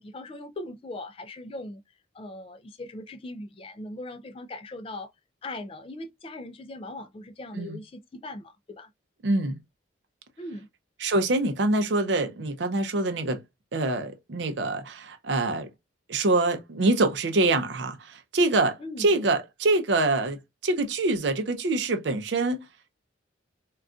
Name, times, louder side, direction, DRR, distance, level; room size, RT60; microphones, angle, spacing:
voice 1, 0.0-1.8 2.1-5.1 5.4-8.9 10.4-10.7 18.8-19.1, left 2 dB, 30° left, 0.3 m, -39 dB
voice 2, 9.2-9.6 11.0-13.4 13.7-15.7 16.1-22.7, right 2 dB, 65° right, 0.5 m, -25 dB
3.7 x 2.3 x 2.3 m
head